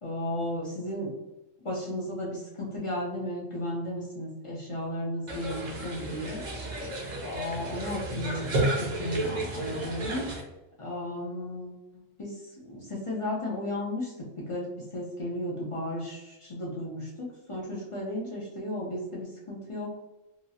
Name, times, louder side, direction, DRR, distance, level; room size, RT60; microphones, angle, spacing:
voice 1, 0.0-1.1 1.6-6.4 7.2-10.3 10.8-12.4 12.7-19.9, left 1 dB, 45° left, -4 dB, 0.4 m, -34 dB
sound 1, 5.3-10.4, right 1 dB, 45° right, 0.6 m, -32 dB
2.9 x 2.3 x 2.7 m, 0.98 s
omnidirectional pair, 1.3 m